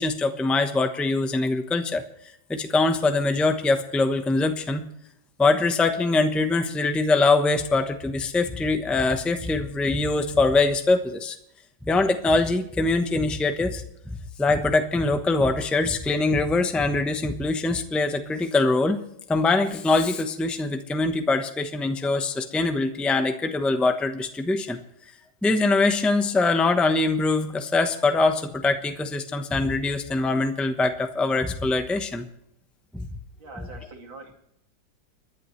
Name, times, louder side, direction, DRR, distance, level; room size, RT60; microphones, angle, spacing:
voice 1, 0.0-2.0 2.5-4.8 5.4-11.4 11.9-13.8 14.4-19.0 19.3-24.8 25.4-32.3 32.9-33.1, left 3 dB, ahead, 7 dB, 0.6 m, -23 dB
voice 2, 33.4-34.3, right 2 dB, 85° right, 1 dB, 3.3 m, -43 dB
29.5 x 11.0 x 3.2 m, 0.77 s
omnidirectional pair, 2.0 m